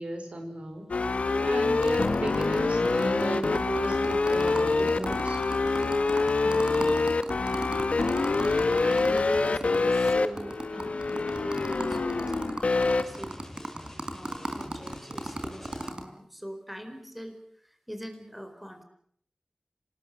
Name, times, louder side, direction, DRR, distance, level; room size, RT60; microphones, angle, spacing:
voice 1, 0.0-5.4, right 1 dB, 70° right, 5 dB, 5.6 m, -35 dB
sound 1, 0.9-13.0, left 3 dB, 80° left, 1.6 m, -26 dB
sound 2, 1.8-9.8 10.1-10.2 10.4-16.0, right 1 dB, 40° right, 4.6 m, -36 dB
voice 2, 8.8-13.4 14.1-18.8, equal, 5° right, 6 dB, 4.5 m, -42 dB
sound 3, 13.0-16.2, left 1 dB, 15° left, 5.7 m, -47 dB
27.0 x 19.5 x 7.6 m, 0.64 s
wide cardioid pair, 50°, 2 cm